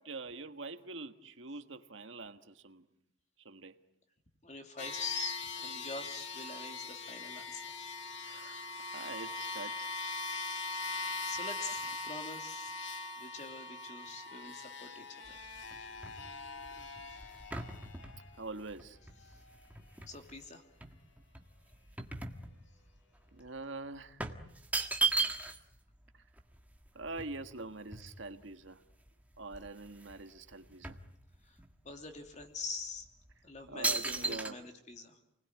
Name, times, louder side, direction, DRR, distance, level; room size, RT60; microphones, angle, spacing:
voice 1, 0.0-2.8 3.4-3.7 8.2-9.9 18.4-19.0 23.3-24.2 26.1-26.2 26.9-28.8 29.4-31.0 33.7-34.6, right 3 dB, 70° right, 8 dB, 1.6 m, -45 dB
voice 2, 4.4-7.7 10.7-12.7 13.2-15.4 19.3-19.4 20.1-20.6 31.4-31.6 31.8-33.1 33.4-35.2, left 3 dB, 35° left, 5 dB, 2.8 m, -44 dB
sound 1, 4.8-18.4, left 3 dB, 60° left, 2.5 m, -41 dB
sound 2, 15.3-20.4 20.8-23.0 23.3-23.5 24.2-25.8 26.1-26.2 26.4-28.5 29.1-29.2 29.4-30.2 30.5-31.7 32.3-32.4 33.1-33.3 33.8-34.5, right 3 dB, 10° right, 1.6 m, -37 dB
29.5 x 20.0 x 9.5 m, 0.79 s
head